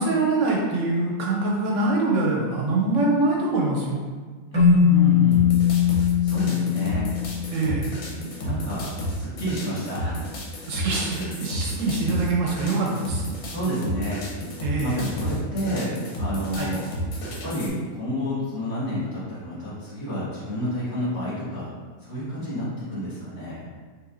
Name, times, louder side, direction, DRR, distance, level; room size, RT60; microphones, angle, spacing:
voice 1, 0.0-4.0 7.5-7.9 10.7-13.3 14.6-15.0 16.5-16.7, right 2 dB, 70° right, -2 dB, 0.9 m, -24 dB
voice 2, 4.5-5.4 6.2-7.0 8.4-8.9 9.2-10.3 13.4-14.2 14.8-16.8 17.2-21.7 22.0-23.6, right 1 dB, 55° left, -10 dB, 1.9 m, -29 dB
Keyboard (musical), 4.5-7.8, left 9 dB, 25° right, 0.8 m, -20 dB
sound 1, 5.3-17.7, equal, 80° left, 1.2 m, -32 dB
4.8 x 2.4 x 2.5 m, 1.4 s
omnidirectional pair, 1.5 m